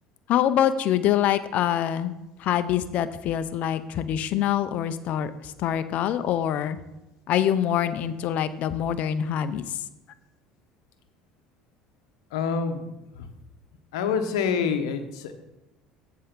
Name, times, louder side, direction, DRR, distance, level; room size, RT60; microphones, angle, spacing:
voice 1, 0.3-2.1 2.4-6.8 7.3-9.6, left 10 dB, 60° left, 12 dB, 0.6 m, -25 dB
voice 2, 12.3-12.9 13.2-13.3 13.9-15.3, left 6 dB, 85° left, 8 dB, 0.9 m, -26 dB
7.8 x 4.6 x 6.7 m, 0.97 s
supercardioid pair, 80°, 3 cm